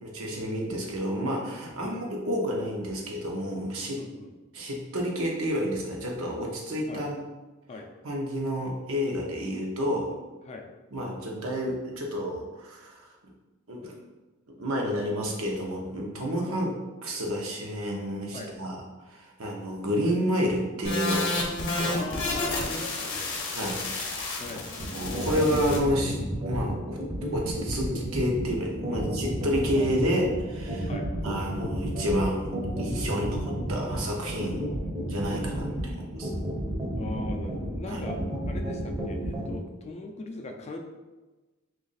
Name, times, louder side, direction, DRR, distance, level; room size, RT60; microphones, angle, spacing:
voice 1, 0.0-4.0 4.5-7.2 8.0-10.2 10.9-13.0 13.7-13.9 14.6-16.7 17.0-18.8 19.0-21.4 21.8-21.9 23.6-24.4 24.9-26.2 26.4-27.0 27.3-30.9 31.2-34.6 35.1-36.3 37.9-38.0, equal, 70° right, -1 dB, 0.8 m, -30 dB
voice 2, 4.0-4.4 6.9-7.1 7.7-7.9 10.4-10.7 16.5-16.6 18.3-18.5 21.8-23.4 24.4-24.7 28.9-29.1 29.5-29.6 30.9-31.1 34.5-35.9 36.9-40.8, left 2 dB, 30° left, 3 dB, 0.4 m, -40 dB
sound 1, 20.8-25.8, left 2 dB, 60° left, 0.7 m, -31 dB
sound 2, 24.8-39.5, right 1 dB, 25° right, 0.7 m, -32 dB
3.0 x 2.5 x 4.0 m, 1.2 s
head